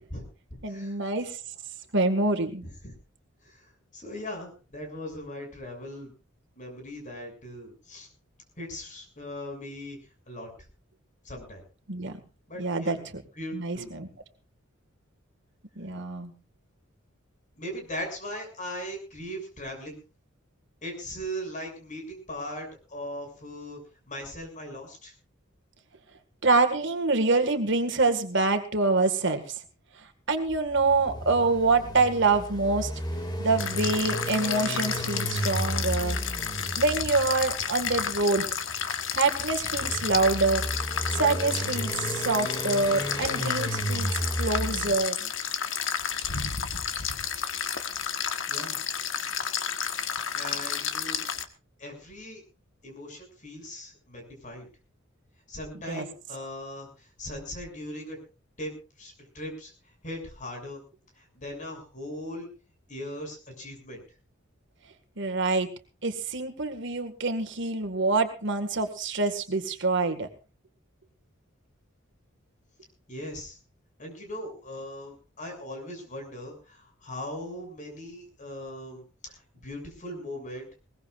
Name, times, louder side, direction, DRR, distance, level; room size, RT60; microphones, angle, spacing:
voice 1, 0.6-1.4 1.9-2.6 11.9-12.1 12.6-13.0 13.5-14.1 15.8-16.3 26.4-29.6 30.3-32.9 33.4-36.2 36.8-38.5 39.2-40.6 41.2-45.2 55.9-56.1 65.2-65.7 66.0-70.3, right 3 dB, 60° right, 7 dB, 2.0 m, -26 dB
voice 2, 2.6-2.9 3.5-3.6 3.9-6.1 6.6-8.1 8.6-10.0 10.3-10.5 11.2-11.6 12.5-13.0 13.4-13.9 17.6-20.0 20.8-23.8 24.1-25.1 48.5-48.8 50.3-51.2 51.8-52.4 52.8-54.7 55.5-58.2 58.6-58.7 59.0-59.7 60.0-60.8 61.2-62.5 62.9-64.0 73.1-73.6 74.0-80.7, equal, 40° left, 3 dB, 6.9 m, -39 dB
sound 1, 30.5-45.0, equal, 20° left, 2.0 m, -34 dB
sound 2, 33.6-51.4, left 8 dB, 65° left, 1.4 m, -31 dB
21.5 x 19.5 x 2.5 m, 0.34 s
head